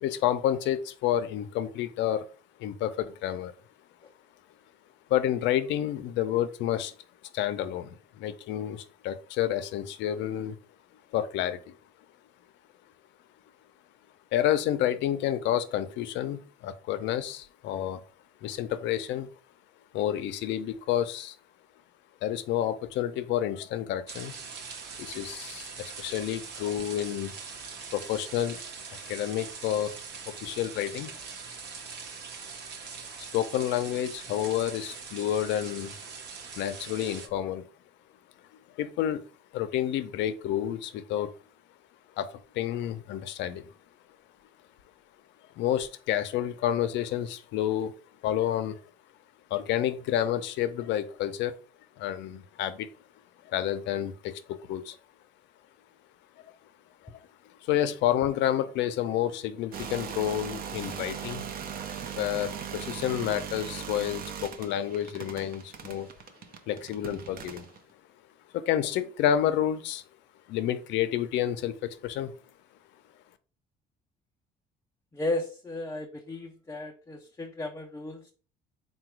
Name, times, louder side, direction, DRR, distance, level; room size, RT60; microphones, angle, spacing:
voice 1, 0.0-2.3 2.6-3.5 5.1-6.9 7.3-10.6 11.1-11.8 14.3-18.0 18.4-19.3 19.9-21.4 22.2-24.3 25.0-27.3 27.9-28.6 28.9-29.9 30.3-31.2 33.3-35.9 36.6-37.7 38.8-39.2 39.5-41.3 42.2-43.7 45.6-47.9 48.2-48.8 49.5-51.6 52.0-52.9 53.4-55.0 57.0-57.1 57.6-61.5 62.2-66.1 66.7-67.7 68.5-70.0 70.5-72.3, left 11 dB, 75° left, 11 dB, 0.5 m, -29 dB
sound 1, 24.1-37.3, right 5 dB, 70° right, 0.9 m, -42 dB
sound 2, 59.7-67.8, right 8 dB, 50° right, 0.6 m, -39 dB
voice 2, 75.1-78.3, left 2 dB, 15° left, 0 dB, 0.4 m, -34 dB
3.8 x 2.2 x 4.4 m, 0.38 s
cardioid pair, 115°, 19 cm